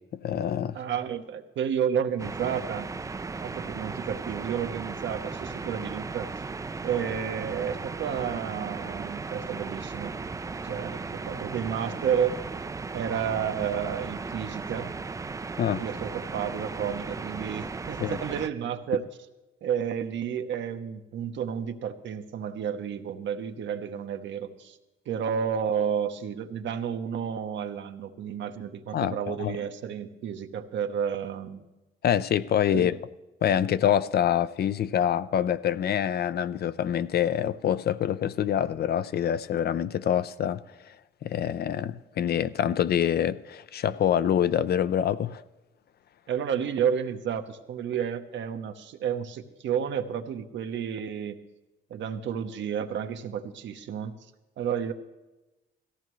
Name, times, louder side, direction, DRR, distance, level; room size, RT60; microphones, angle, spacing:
voice 1, 0.1-0.8 15.6-15.8 18.0-18.2 28.9-29.6 32.0-33.0 33.4-40.6 41.2-45.4, left 9 dB, 55° left, 0.5 m, -26 dB
voice 2, 0.7-2.9 3.4-6.3 6.8-10.2 10.6-12.4 12.9-14.9 15.7-19.1 19.6-24.8 25.1-31.6 32.7-33.0 46.3-51.4 51.9-54.1 54.6-54.9, right 8 dB, 70° right, 0.9 m, -31 dB
sound 1, 2.2-18.5, right 4 dB, 15° right, 0.4 m, -36 dB
17.0 x 14.5 x 3.1 m
cardioid pair, 90°, 20 cm